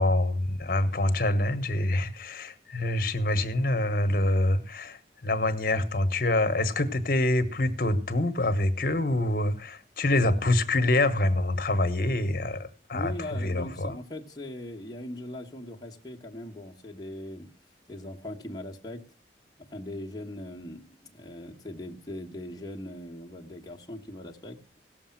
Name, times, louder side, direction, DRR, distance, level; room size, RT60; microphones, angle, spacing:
voice 1, 0.0-13.1 13.4-14.0, left 1 dB, 55° left, 1.3 m, -26 dB
voice 2, 12.9-17.5 17.9-19.0 19.6-24.6, left 1 dB, 20° left, 1.3 m, -40 dB
17.0 x 7.1 x 5.8 m
head